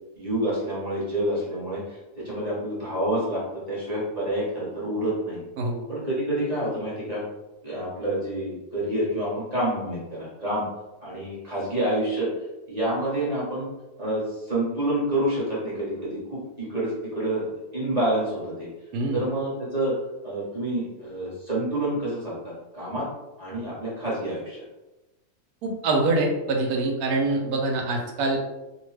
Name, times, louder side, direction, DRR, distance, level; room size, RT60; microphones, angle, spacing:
voice 1, 0.2-3.4 3.7-5.4 5.9-7.2 7.6-10.7 11.0-12.3 12.7-13.7 14.0-18.7 19.1-19.9 20.2-23.0 23.4-24.6, right 1 dB, 30° right, -8 dB, 1.0 m, -28 dB
voice 2, 25.6-28.4, right 2 dB, 75° right, 1 dB, 1.0 m, -24 dB
2.8 x 2.1 x 3.2 m, 1.0 s
omnidirectional pair, 1.6 m